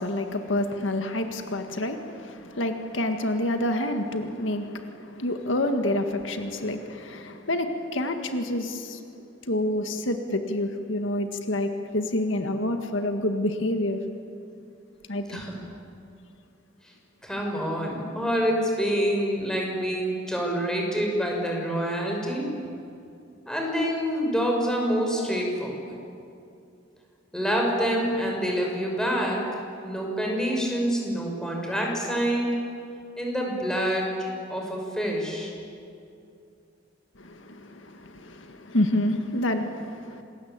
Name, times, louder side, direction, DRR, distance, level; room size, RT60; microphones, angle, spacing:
voice 1, 0.0-9.0 9.5-14.0 15.1-15.4 37.2-40.2, left 1 dB, 80° left, 6 dB, 1.8 m, -28 dB
voice 2, 17.2-22.5 23.5-25.9 27.3-29.4 29.8-32.5 33.2-34.1 34.5-35.5, equal, 5° left, 0 dB, 5.6 m, -26 dB
27.0 x 20.5 x 8.9 m, 2.6 s
head